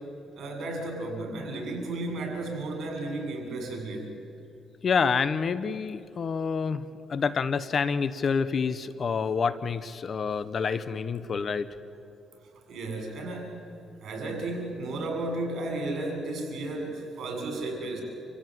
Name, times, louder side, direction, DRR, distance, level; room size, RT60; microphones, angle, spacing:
voice 1, 0.4-4.2 12.5-13.6 14.0-18.0, right 2 dB, 65° right, 2 dB, 7.2 m, -33 dB
voice 2, 4.8-6.8 7.1-11.7, left 5 dB, 45° left, 15 dB, 1.0 m, -27 dB
27.5 x 15.5 x 9.6 m, 2.9 s
cardioid pair, 90°, 0 cm